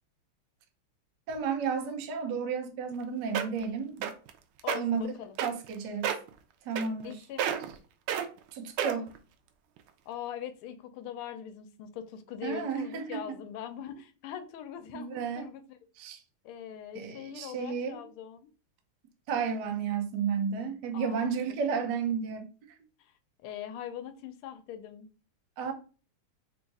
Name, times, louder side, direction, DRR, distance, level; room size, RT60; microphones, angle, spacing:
voice 1, 1.3-4.1 4.7-5.1 5.4-6.1 6.7-7.2 8.5-9.1 12.4-13.4 14.9-15.5 16.0-16.2 16.9-18.0 19.3-22.5 25.6-25.7, right 6 dB, 70° right, 1.2 m, -32 dB
sound 1, 2.9-3.0 3.3-3.6 4.0-4.3 4.6-4.8 5.4-5.7 6.0-6.3 6.8-7.1 7.4-7.7 8.1-8.3 8.8-9.2 9.8-9.9, right 9 dB, 85° right, 1.4 m, -30 dB
voice 2, 4.6-5.4 7.0-7.5 10.1-15.8 16.4-18.5 20.9-21.3 21.7-21.8 23.0-23.1 23.4-25.1, left 9 dB, 85° left, 1.5 m, -42 dB
3.8 x 2.3 x 4.0 m
omnidirectional pair, 2.3 m